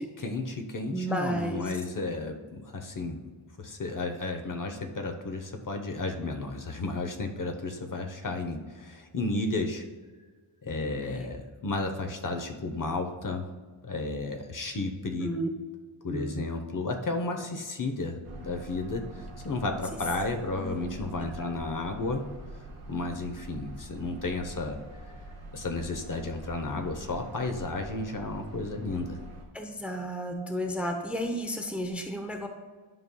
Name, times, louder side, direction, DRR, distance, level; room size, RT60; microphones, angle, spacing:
voice 1, 0.2-3.2 3.6-9.8 10.6-13.4 13.8-15.3 16.0-19.1 19.4-22.3 22.9-24.8 25.5-29.2, left 2 dB, 40° left, 4 dB, 0.8 m, -33 dB
voice 2, 0.9-1.7 11.0-11.2 15.2-15.5 16.1-16.4 19.9-20.0 20.5-20.9 21.2-21.3 29.5-32.5, equal, 5° right, 4 dB, 0.6 m, -33 dB
sound 1, 18.2-29.4, right 2 dB, 85° right, 1.5 m, -45 dB
11.0 x 5.3 x 2.2 m, 1.4 s
wide cardioid pair, 95°, 48 cm